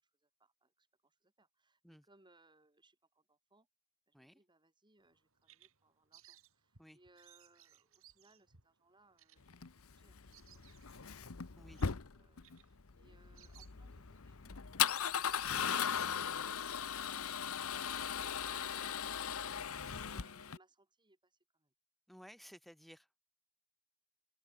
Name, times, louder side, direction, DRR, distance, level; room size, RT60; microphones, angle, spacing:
voice 1, 0.0-3.7 4.1-10.2 10.5-11.2 11.9-14.6 18.3-21.7, right 2 dB, 20° right, 5.9 m, -70 dB
Bird vocalization bird call bird song, 5.0-14.2, right 9 dB, 70° right, 3.3 m, -65 dB
Male speech man speaking / Car / Engine starting, 9.5-20.6, left 8 dB, 75° left, 1.0 m, -38 dB
voice 2, 22.1-23.2, equal, ahead, 7.1 m, -57 dB
open air
head